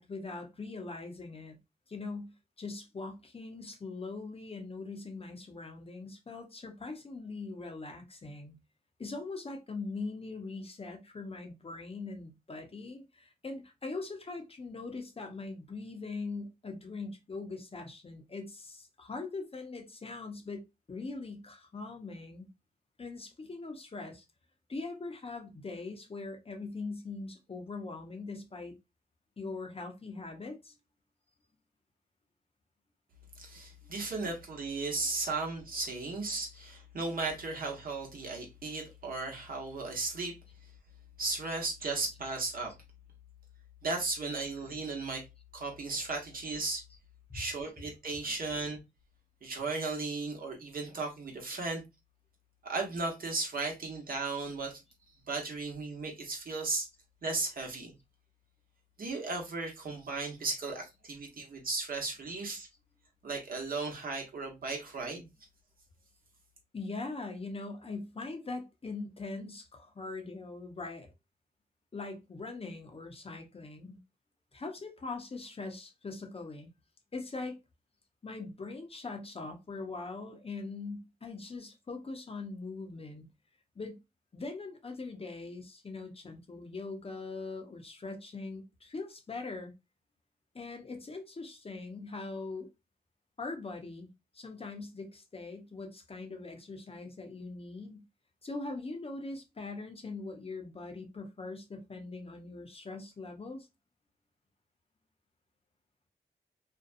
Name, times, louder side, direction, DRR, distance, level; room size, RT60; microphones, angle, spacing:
voice 1, 0.0-1.6 1.9-8.6 9.0-22.5 23.0-24.2 24.7-28.7 29.4-30.7 36.5-36.7 47.3-47.4 66.7-71.1 71.9-74.0 74.5-76.7 77.1-77.6 78.2-83.3 83.8-84.0 84.3-89.7 90.5-92.7 93.4-94.1 94.3-98.0 98.4-103.7, left 3 dB, 35° left, 0.7 m, -41 dB
voice 2, 33.3-40.4 41.2-42.7 43.8-45.3 45.5-46.8 47.3-48.8 49.4-51.8 52.6-54.8 55.3-56.9 57.2-57.9 59.0-62.7 63.2-65.3, right 3 dB, 55° right, 1.0 m, -35 dB
2.6 x 2.2 x 2.5 m
cardioid pair, 65°, 17 cm